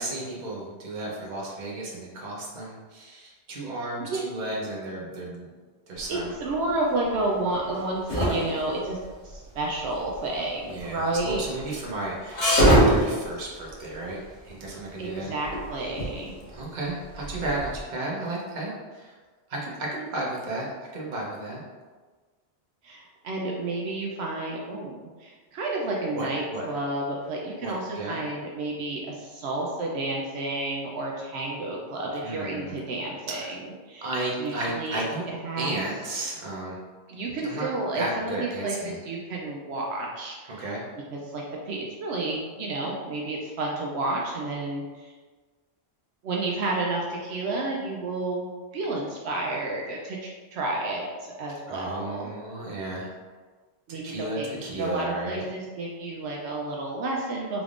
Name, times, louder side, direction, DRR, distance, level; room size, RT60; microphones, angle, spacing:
voice 1, 0.0-5.5 5.9-6.3 10.7-15.3 16.5-19.1 19.5-21.6 26.1-26.6 27.6-28.2 32.2-32.8 33.3-33.5 34.0-35.3 35.6-36.8 37.4-37.7 38.0-39.0 40.5-40.9 51.7-53.1 53.9-55.5, right 2 dB, 45° right, -4 dB, 0.9 m, -33 dB
sound 1, 6.0-17.8, equal, 90° left, 1.6 m, -26 dB
voice 2, 6.1-9.0 9.2-11.4 15.0-16.3 22.8-34.1 34.4-35.0 35.4-35.8 37.1-40.7 41.1-45.1 46.2-52.3 53.9-57.6, right 2 dB, 75° right, -1 dB, 0.8 m, -31 dB
3.9 x 3.4 x 2.4 m, 1.4 s
omnidirectional pair, 1.1 m